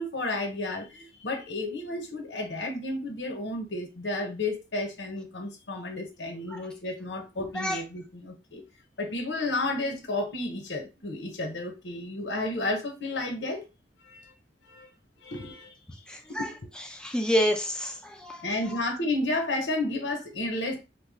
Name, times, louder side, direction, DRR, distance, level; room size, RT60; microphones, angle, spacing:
voice 1, 0.0-8.6 9.0-13.6 14.0-14.3 14.6-14.9 15.2-15.7 16.3-16.5 18.4-20.8, left 2 dB, 85° left, 1.0 m, -32 dB
voice 2, 16.1-16.5 16.9-18.4, equal, 5° left, 0.6 m, -28 dB
3.1 x 2.3 x 3.5 m
head